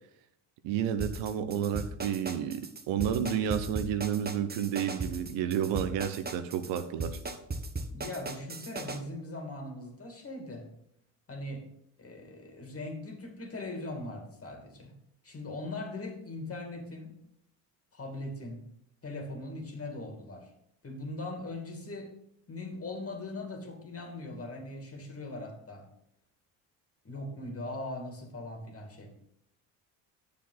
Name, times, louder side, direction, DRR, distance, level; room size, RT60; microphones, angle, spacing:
voice 1, 0.6-7.2, right 9 dB, 70° right, 11 dB, 1.0 m, -31 dB
sound 1, 1.0-9.0, right 2 dB, 20° right, 1.1 m, -37 dB
voice 2, 7.9-10.7 11.3-11.7 12.0-14.9 15.2-17.1 17.9-18.7 19.0-20.5 20.8-22.1 22.5-25.9 27.0-29.1, left 2 dB, 30° left, 3 dB, 2.4 m, -40 dB
9.7 x 6.7 x 4.0 m, 0.76 s
hypercardioid pair, 70°, 45 cm